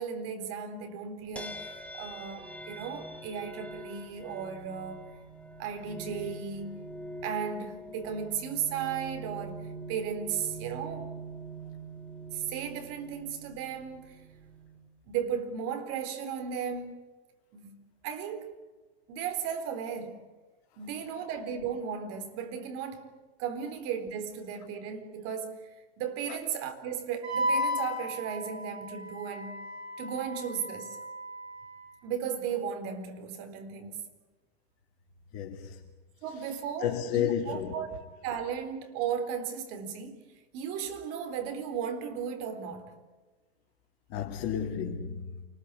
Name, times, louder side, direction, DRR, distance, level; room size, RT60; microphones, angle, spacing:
voice 1, 0.0-5.1 5.6-6.9 7.2-11.1 12.3-14.2 15.1-17.0 17.5-18.7 19.1-20.3 20.8-29.7 30.0-31.0 32.0-34.1 36.2-37.9 38.2-40.3 40.5-43.0, right 7 dB, 45° right, 4.1 m, -35 dB
sound 1, 1.4-14.9, right 2 dB, 5° left, 2.4 m, -44 dB
Wind instrument woodwind instrument, 27.2-31.9, left 1 dB, 80° right, 6.4 m, -34 dB
voice 2, 35.3-35.8 36.8-37.7 44.1-45.4, left 9 dB, 45° left, 3.0 m, -32 dB
28.5 x 21.0 x 8.4 m
hypercardioid pair, 115°, 32 cm